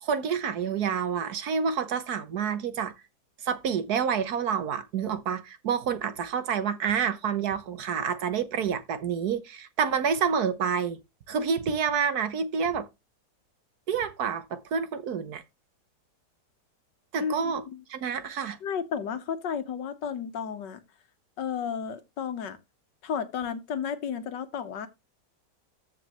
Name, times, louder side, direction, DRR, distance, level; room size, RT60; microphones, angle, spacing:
voice 1, 0.0-2.9 3.4-11.0 11.3-12.9 13.9-15.4 17.1-17.6 17.9-18.6, right 7 dB, 65° right, 1.5 m, -28 dB
voice 2, 17.2-17.8 18.6-20.8 21.4-22.6 23.0-24.9, left 7 dB, 90° left, 1.7 m, -33 dB
14.0 x 5.3 x 3.0 m
omnidirectional pair, 1.8 m